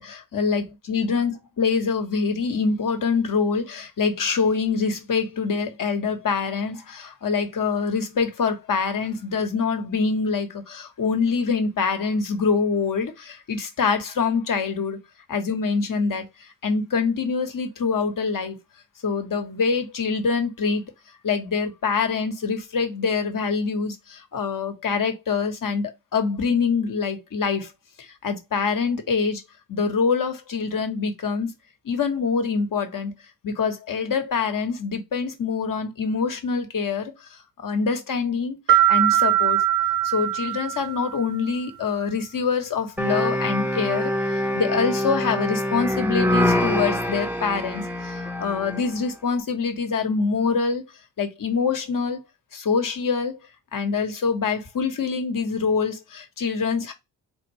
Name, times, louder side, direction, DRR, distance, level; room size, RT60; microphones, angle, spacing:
voice 1, 0.0-15.0 15.3-18.6 19.0-20.8 21.2-27.7 28.0-29.4 29.7-31.5 31.8-33.1 33.4-38.6 38.8-39.6 40.0-50.8 51.2-52.2 52.5-53.4 53.7-56.9, left 5 dB, 45° left, 1.2 m, -25 dB
sound 1, 38.7-41.3, right 12 dB, 50° right, 0.9 m, -21 dB
sound 2, 43.0-48.9, left 1 dB, 5° right, 0.9 m, -25 dB
4.1 x 2.5 x 3.1 m
hypercardioid pair, 45°, 45 cm